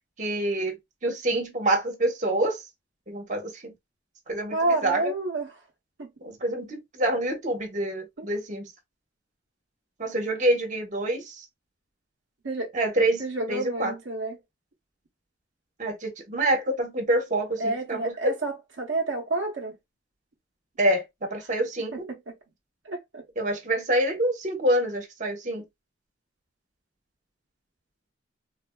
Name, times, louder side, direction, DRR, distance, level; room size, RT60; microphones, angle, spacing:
voice 1, 0.2-0.8 1.0-2.6 3.1-3.7 4.3-5.1 6.2-8.7 10.0-11.4 12.7-13.2 13.5-13.9 15.8-18.3 20.8-21.0 21.3-22.1 23.4-25.6, right 1 dB, 40° right, 1.0 m, -26 dB
voice 2, 4.5-5.5 6.0-6.1 8.2-8.3 12.4-12.7 13.2-14.4 17.6-19.8 21.9-22.3 22.8-23.2, right 2 dB, 75° right, 0.8 m, -29 dB
3.7 x 2.3 x 2.2 m
head